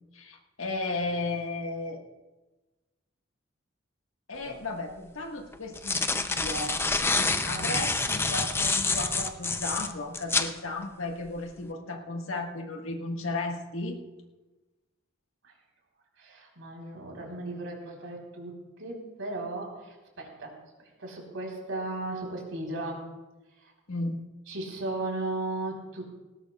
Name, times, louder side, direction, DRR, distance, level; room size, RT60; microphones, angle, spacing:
voice 1, 0.1-2.0 4.3-6.8 7.4-14.0 23.9-24.2, left 2 dB, 85° left, 2 dB, 1.6 m, -34 dB
sound 1, 4.5-4.6 5.5-10.5, left 3 dB, 10° left, 0.5 m, -27 dB
voice 2, 7.1-7.9 15.4-15.5 16.2-20.5 20.8-23.1 23.6-23.7 24.5-26.0, right 2 dB, 85° right, 0 dB, 3.9 m, -36 dB
19.0 x 17.5 x 2.4 m, 1.2 s
head